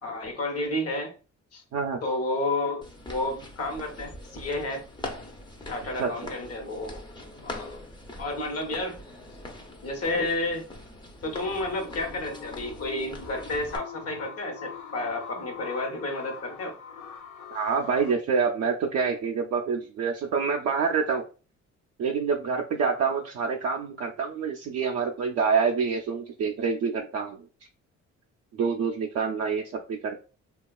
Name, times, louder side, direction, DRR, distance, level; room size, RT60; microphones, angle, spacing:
voice 1, 0.0-1.1 1.5-1.6 2.0-4.8 5.7-7.0 7.4-7.8 8.2-9.0 9.8-10.6 11.2-16.7, left 2 dB, 55° left, 3 dB, 0.9 m, -31 dB
sound 1, 2.8-13.8, left 1 dB, 15° left, 0.5 m, -43 dB
sound 2, 11.2-18.1, left 5 dB, 85° left, 0.6 m, -43 dB
voice 2, 17.5-21.2 22.0-27.4 28.6-30.2, right 5 dB, 55° right, 1 dB, 0.4 m, -27 dB
2.8 x 2.3 x 2.3 m, 0.36 s
cardioid pair, 90°, 30 cm